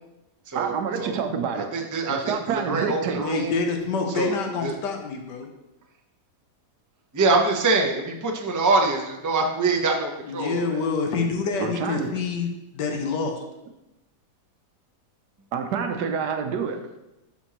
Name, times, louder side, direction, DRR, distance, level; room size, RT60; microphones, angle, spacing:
voice 1, 0.5-1.7 2.1-3.2 11.6-12.1 15.5-16.9, right 6 dB, 75° right, 6 dB, 1.3 m, -27 dB
voice 2, 1.7-3.5 4.1-4.3 4.6-4.7 7.1-10.6, right 3 dB, 30° right, 2 dB, 0.3 m, -24 dB
voice 3, 3.2-5.5 10.2-13.4, left 4 dB, 85° left, 3 dB, 1.5 m, -27 dB
11.5 x 4.4 x 3.0 m, 0.93 s
omnidirectional pair, 1.8 m